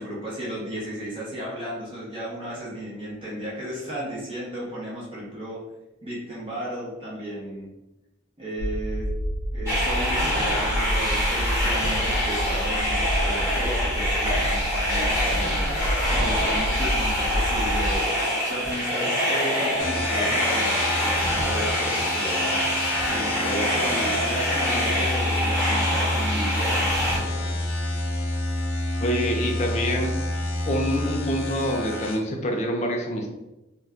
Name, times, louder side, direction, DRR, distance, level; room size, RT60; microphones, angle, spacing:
voice 1, 0.0-5.6 6.0-7.7 8.4-9.1 9.5-15.7 16.1-18.0 18.5-22.4 23.0-27.6, equal, 25° right, -7 dB, 0.9 m, -34 dB
sound 1, 8.6-18.0, equal, 70° right, 0.6 m, -28 dB
sound 2, 9.7-27.2, equal, 10° right, 1.3 m, -25 dB
sound 3, 19.8-32.2, left 1 dB, 85° left, 0.5 m, -28 dB
voice 2, 29.0-30.1 30.7-33.3, equal, 35° left, 2 dB, 0.4 m, -26 dB
2.7 x 2.2 x 3.4 m, 0.98 s
head